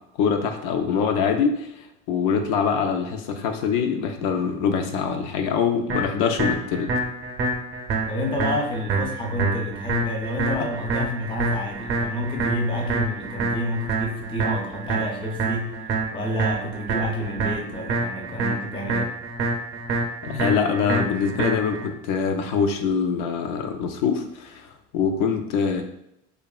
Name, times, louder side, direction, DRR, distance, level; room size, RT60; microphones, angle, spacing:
voice 1, 0.2-6.9 20.2-25.8, left 6 dB, 80° left, 5 dB, 0.5 m, -24 dB
sound 1, 5.9-21.9, right 3 dB, 40° right, 0.5 m, -27 dB
voice 2, 8.1-15.8 16.1-19.2, left 1 dB, 20° left, 1 dB, 0.3 m, -29 dB
2.8 x 2.2 x 2.3 m, 0.83 s
cardioid pair, 130°, 29 cm